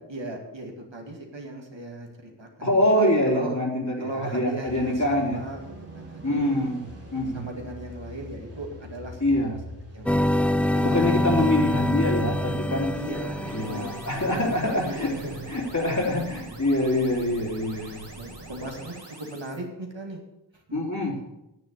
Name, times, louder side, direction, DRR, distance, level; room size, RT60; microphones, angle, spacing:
voice 1, 0.0-2.7 3.3-3.5 4.0-5.6 5.9-6.6 7.3-9.3 9.9-10.2 11.3-11.5 12.9-15.4 16.3-16.5 18.1-20.2 20.5-20.8, right 1 dB, 80° right, 2 dB, 2.2 m, -37 dB
voice 2, 2.6-5.4 6.2-6.9 7.1-7.4 9.2-9.6 10.7-12.9 13.5-15.1 15.5-18.0 20.7-21.2, left 1 dB, 40° left, -1 dB, 3.4 m, -25 dB
sound 1, 4.6-15.8, equal, 35° right, 3.0 m, -43 dB
sound 2, 10.1-14.3, left 1 dB, 5° left, 0.4 m, -25 dB
sound 3, 12.8-19.6, right 2 dB, 65° right, 3.2 m, -43 dB
9.5 x 7.6 x 8.3 m, 0.88 s
wide cardioid pair, 45°, 44 cm